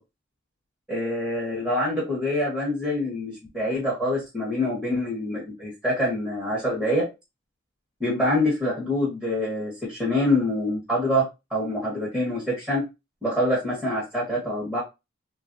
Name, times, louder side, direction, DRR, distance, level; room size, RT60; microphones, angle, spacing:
voice 1, 0.9-7.0 8.0-11.2 11.5-12.8 13.2-14.8, left 1 dB, 5° right, -6 dB, 0.9 m, -25 dB
3.4 x 2.3 x 2.5 m, 0.25 s
head